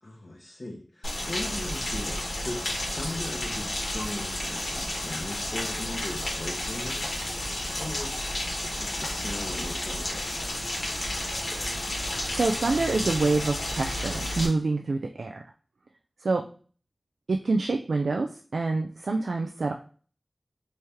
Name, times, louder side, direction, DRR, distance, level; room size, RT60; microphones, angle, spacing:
voice 1, 0.0-10.8, left 1 dB, 50° left, -3 dB, 0.8 m, -39 dB
Rain, 1.0-14.5, left 1 dB, 85° left, 1.2 m, -32 dB
voice 2, 12.3-15.4 16.2-16.4 17.3-19.7, right 3 dB, 90° right, 3 dB, 0.3 m, -26 dB
3.1 x 2.8 x 3.4 m, 0.41 s
wide cardioid pair, 60°, 0 cm